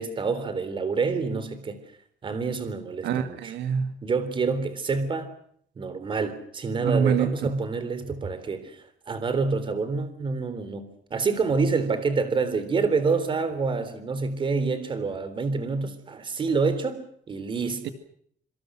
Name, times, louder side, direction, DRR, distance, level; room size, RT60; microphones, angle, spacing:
voice 1, 0.0-1.8 2.2-3.5 4.0-5.3 5.8-17.0 17.3-17.8, right 4 dB, 30° right, 11 dB, 3.5 m, -27 dB
voice 2, 3.0-3.9 6.8-7.5 17.8-17.9, right 7 dB, 75° right, 8 dB, 2.3 m, -25 dB
27.0 x 26.0 x 6.4 m, 0.65 s
cardioid pair, 175°, 18 cm